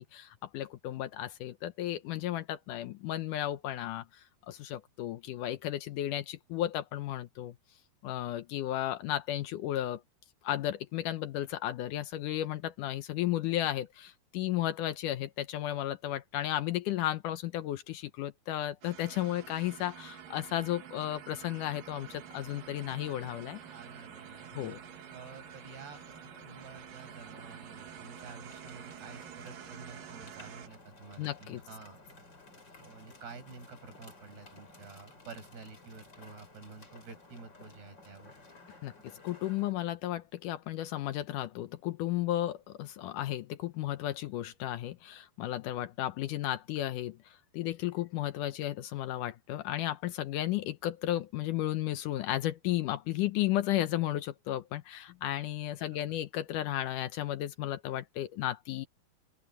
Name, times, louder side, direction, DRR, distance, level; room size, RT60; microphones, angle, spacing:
voice 1, 0.0-7.6 8.0-10.0 10.4-23.6 24.5-24.8 31.2-31.6 38.8-38.9 39.2-58.9, left 13 dB, 75° left, 1.9 m, -34 dB
sound 1, 18.8-30.7, right 10 dB, 65° right, 3.2 m, -49 dB
sound 2, 22.0-39.7, left 2 dB, 25° left, 5.1 m, -56 dB
voice 2, 23.7-24.8 25.1-32.2 32.8-38.3 55.9-56.2, right 4 dB, 85° right, 7.6 m, -50 dB
open air
omnidirectional pair, 4.5 m